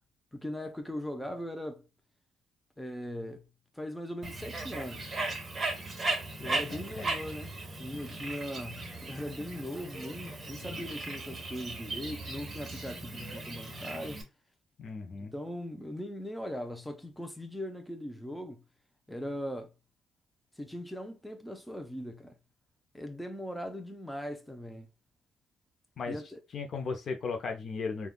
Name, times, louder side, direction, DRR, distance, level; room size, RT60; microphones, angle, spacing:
voice 1, 0.3-1.9 2.8-3.5 3.7-5.1 6.4-7.5 7.8-14.2 15.2-18.6 19.1-19.7 20.6-22.4 22.9-24.9 26.1-26.4, equal, 5° left, 0.6 m, -39 dB
Bird, 4.2-14.2, right 2 dB, 35° right, 1.1 m, -37 dB
voice 2, 6.4-7.1 10.6-10.9 14.8-15.3 26.0-26.2 26.5-28.1, left 4 dB, 55° left, 0.6 m, -37 dB
3.4 x 2.3 x 2.2 m
cardioid pair, 90°, 0 cm